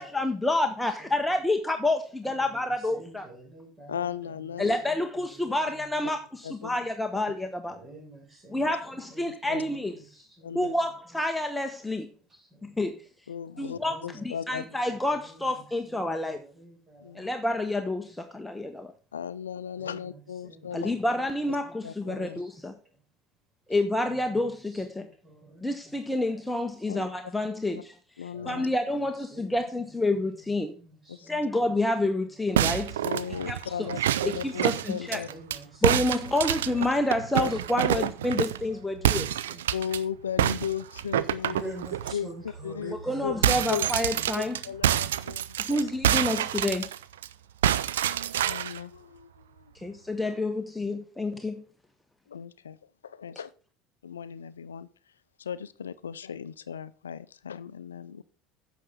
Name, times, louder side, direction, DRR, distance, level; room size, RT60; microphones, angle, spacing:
voice 1, 0.0-3.3 4.6-7.8 8.5-9.9 10.5-12.1 12.6-12.9 13.6-13.9 14.2-16.4 17.1-18.9 20.7-22.7 23.7-25.1 25.6-27.9 28.5-30.7 31.3-33.0 33.5-33.6 34.2-35.2 35.8-39.3 42.9-44.6 45.6-46.9 49.8-51.6, left 2 dB, 5° left, 6 dB, 1.1 m, -28 dB
voice 2, 2.2-4.2 4.8-5.0 5.3-6.2 6.6-6.8 7.7-10.6 12.4-12.8 13.7-17.3 18.0-18.2 19.8-20.1 20.4-21.3 21.6-21.8 22.4-22.7 24.2-26.2 26.9-27.1 28.3-28.7 29.3-29.6 30.1-31.5 31.9-32.1 35.1-36.1 36.4-37.0 37.6-38.8 39.5-39.6 41.5-44.5, right 1 dB, 30° right, 2 dB, 5.7 m, -48 dB
voice 3, 3.9-4.8 6.4-6.7 8.6-8.7 9.3-9.6 10.4-10.7 13.3-14.6 17.0-17.3 19.1-20.9 21.5-21.6 21.8-22.4 26.9-27.0 27.7-27.8 28.2-28.7 31.1-31.3 33.0-35.3 37.4-37.5 37.9-38.0 39.7-41.7 42.1-42.9 43.2-43.4 43.7-43.9 44.4-45.9 48.5-49.9 52.3-52.8 53.0-53.5 54.0-54.9 55.4-58.2, left 8 dB, 85° left, 16 dB, 0.4 m, -36 dB
sound 1, 32.6-35.6 35.8-38.7 39.0-40.0 40.4-42.1 42.6-42.7 43.0-47.3 47.6-48.8, right 11 dB, 80° right, 0.4 m, -27 dB
9.9 x 7.1 x 3.7 m, 0.39 s
hypercardioid pair, 70°, 0 cm